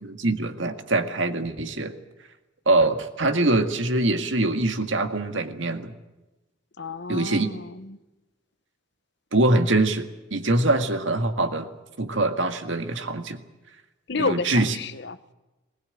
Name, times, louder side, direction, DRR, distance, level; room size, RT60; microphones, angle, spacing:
voice 1, 0.0-2.0 2.7-5.9 7.1-7.5 9.3-11.7 12.0-13.4 14.2-14.7, right 2 dB, 70° right, 7 dB, 2.0 m, -23 dB
voice 2, 6.8-8.0 14.1-15.2, left 4 dB, 60° left, 13 dB, 1.0 m, -30 dB
21.0 x 19.5 x 9.1 m, 1.1 s
head